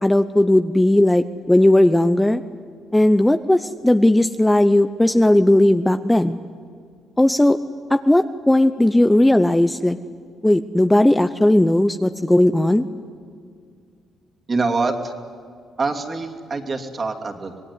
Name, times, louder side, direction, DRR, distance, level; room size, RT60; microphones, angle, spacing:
voice 1, 0.0-2.4 2.9-6.4 7.2-7.6 7.9-10.0 10.4-12.9, left 1 dB, 10° left, 10 dB, 0.8 m, -16 dB
voice 2, 14.5-15.1 15.8-17.6, right 3 dB, 35° right, 3 dB, 2.9 m, -25 dB
26.0 x 19.5 x 9.7 m, 2.3 s
cardioid pair, 90°, 0 cm